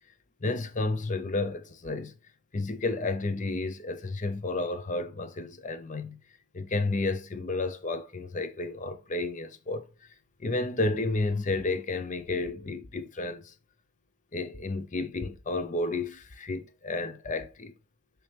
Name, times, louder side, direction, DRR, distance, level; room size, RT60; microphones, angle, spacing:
voice 1, 0.4-2.1 2.5-6.2 6.5-9.8 10.4-13.5 14.3-17.7, left 2 dB, 35° left, 0.6 m, -31 dB
8.5 x 3.3 x 3.3 m
head